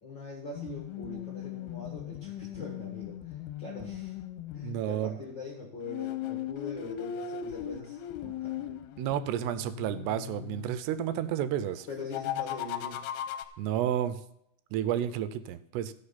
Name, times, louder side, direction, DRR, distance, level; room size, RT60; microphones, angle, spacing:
voice 1, 0.0-4.2 4.5-8.7 11.9-13.0, left 3 dB, 45° left, -1 dB, 1.5 m, -42 dB
sound 1, 0.5-4.8 5.9-10.7 11.9-13.5, left 10 dB, 80° left, 2.5 m, -38 dB
voice 2, 4.6-5.2 9.0-11.9 13.6-14.2 14.7-15.9, right 10 dB, 85° right, 14 dB, 2.7 m, -31 dB
15.0 x 5.9 x 5.7 m, 0.78 s
omnidirectional pair, 4.9 m